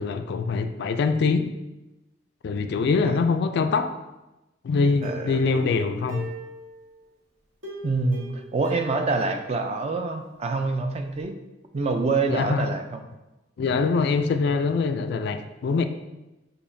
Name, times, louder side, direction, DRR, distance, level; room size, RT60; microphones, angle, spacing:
voice 1, 0.0-1.5 2.4-3.9 4.6-6.3 12.3-12.7 13.6-15.8, left 4 dB, 60° left, 8 dB, 0.3 m, -24 dB
voice 2, 5.0-5.4 7.8-11.3 11.7-13.0, right 3 dB, 35° right, 6 dB, 0.4 m, -26 dB
Plucked string instrument, 5.0-7.0 7.6-10.4 10.7-10.8 11.2-11.3, right 1 dB, 80° right, 1.5 m, -40 dB
6.7 x 2.8 x 2.6 m, 1.0 s
head